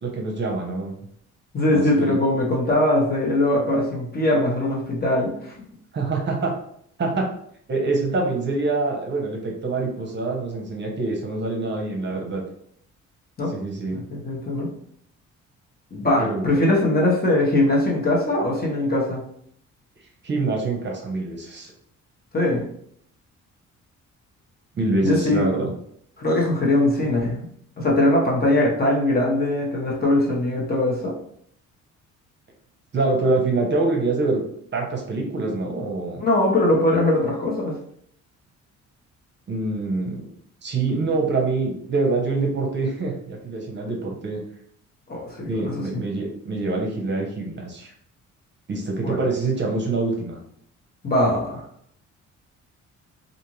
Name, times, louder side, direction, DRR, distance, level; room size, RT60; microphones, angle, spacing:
voice 1, 0.0-0.9 1.7-2.2 5.9-6.5 7.0-7.3 7.7-12.4 13.5-14.0 16.2-16.6 20.2-21.7 24.8-25.7 32.9-34.4 34.7-36.2 39.5-40.3 40.6-44.4 45.5-47.9 48.7-50.4, right 3 dB, 35° right, 0 dB, 0.7 m, -25 dB
voice 2, 1.5-5.5 13.4-13.5 13.9-14.7 15.9-19.2 22.3-22.7 25.0-25.5 26.2-27.5 27.8-31.1 36.2-37.8 45.1-46.0 49.0-49.3 51.0-51.6, left 1 dB, 30° left, -2 dB, 0.9 m, -21 dB
2.6 x 2.4 x 3.0 m, 0.67 s
cardioid pair, 90°, 30 cm